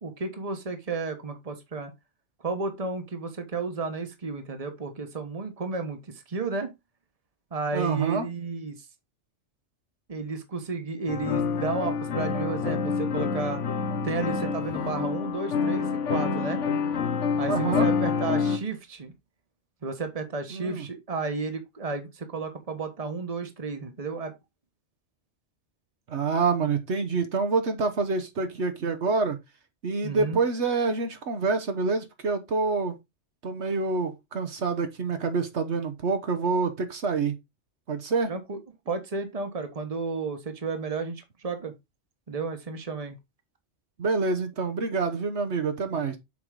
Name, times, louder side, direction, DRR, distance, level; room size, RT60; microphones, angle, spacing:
voice 1, 0.0-1.9 2.4-6.7 7.5-8.9 10.1-13.6 14.0-16.6 17.4-19.1 19.8-24.3 30.0-30.4 38.3-38.6 38.9-41.7 42.3-43.2, right 4 dB, 30° right, 1.3 m, -32 dB
voice 2, 7.7-8.3 17.5-17.9 20.5-20.9 26.1-29.4 29.8-33.0 33.4-37.3 37.9-38.3 44.0-46.2, right 4 dB, 70° right, 1.3 m, -27 dB
sound 1, 11.1-18.6, left 5 dB, 90° left, 1.3 m, -27 dB
7.4 x 4.8 x 3.7 m
omnidirectional pair, 1.2 m